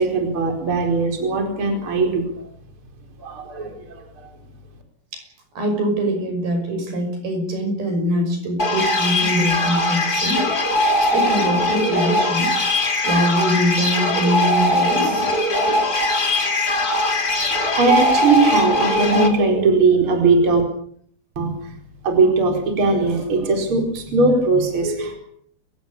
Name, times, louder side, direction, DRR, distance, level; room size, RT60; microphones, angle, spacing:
voice 1, 0.0-2.3 3.2-3.8 4.2-4.3 17.3-20.6 21.4-21.7 22.0-25.2, right 3 dB, 30° right, 4 dB, 5.1 m, -19 dB
voice 2, 5.6-10.4 11.0-12.6 13.0-15.3, equal, 65° right, 5 dB, 7.9 m, -23 dB
sound 1, 8.6-19.3, left 1 dB, 25° left, 3.5 m, -20 dB
30.0 x 16.0 x 8.6 m, 0.64 s
omnidirectional pair, 4.7 m